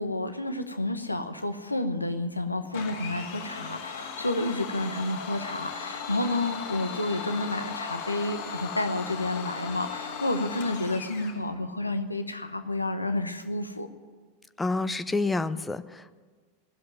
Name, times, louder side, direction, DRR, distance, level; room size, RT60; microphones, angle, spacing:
voice 1, 0.0-13.9, left 2 dB, 85° left, 8 dB, 1.0 m, -30 dB
Domestic sounds home sounds, 2.7-11.4, left 6 dB, 55° left, 2.0 m, -37 dB
voice 2, 14.6-16.1, left 3 dB, 10° left, 15 dB, 0.5 m, -28 dB
19.0 x 7.6 x 9.2 m, 1.5 s
figure-of-eight pair, 90°, 0 cm